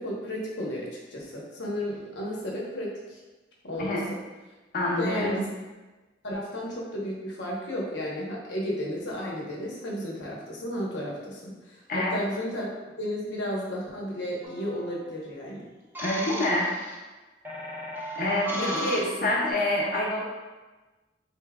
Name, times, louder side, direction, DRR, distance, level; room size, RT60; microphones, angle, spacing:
voice 1, 0.0-3.2 3.6-4.0 5.0-5.5 6.2-15.6 18.5-18.9 19.2-19.3, equal, 75° left, -3 dB, 0.9 m, -33 dB
voice 2, 4.7-5.4 11.9-12.2 16.0-16.7 18.1-20.3, left 1 dB, 50° left, -3 dB, 0.8 m, -27 dB
sound 1, 14.4-15.0 15.9-17.0 17.4-19.5, equal, 10° right, 0.6 m, -35 dB
4.3 x 3.5 x 2.2 m, 1.2 s
head